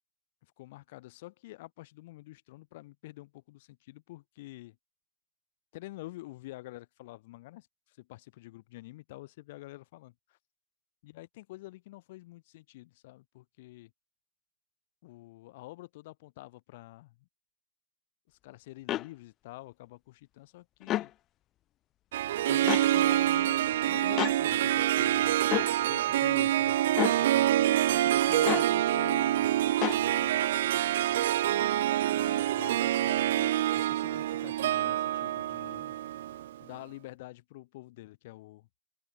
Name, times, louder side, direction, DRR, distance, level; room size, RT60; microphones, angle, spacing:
voice 1, 0.6-4.8 5.7-10.4 11.0-13.9 15.0-17.1 18.3-21.1 22.5-26.8 27.2-30.4 32.1-36.0 36.6-38.7, left 19 dB, 50° left, 5.6 m, -48 dB
sound 1, 18.9-19.1 20.8-21.1 22.7-22.9 24.2-24.4 25.5-25.7 26.9-27.2 28.4-28.7 29.8-30.0, left 14 dB, 35° left, 1.1 m, -29 dB
Harp, 22.1-36.6, right 13 dB, 60° right, 0.4 m, -26 dB
figure-of-eight pair, 90°, 0 cm